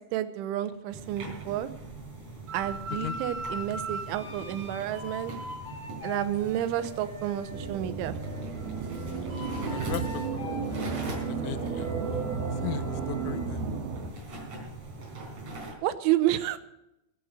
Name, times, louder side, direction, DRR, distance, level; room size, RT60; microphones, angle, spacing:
voice 1, 0.1-1.7 2.5-5.3 6.0-8.2 15.8-16.6, right 12 dB, 85° right, 11 dB, 3.3 m, -30 dB
sound 1, 0.9-15.7, right 2 dB, 40° right, 4.6 m, -41 dB
sound 2, 2.5-7.7 8.2-13.5, equal, 20° right, 4.5 m, -41 dB
sound 3, 7.5-14.1, right 5 dB, 60° right, 3.2 m, -33 dB
voice 2, 9.7-11.2 11.4-11.9 12.6-13.6, left 13 dB, 80° left, 14 dB, 2.8 m, -38 dB
20.5 x 8.0 x 5.0 m, 0.87 s
omnidirectional pair, 5.4 m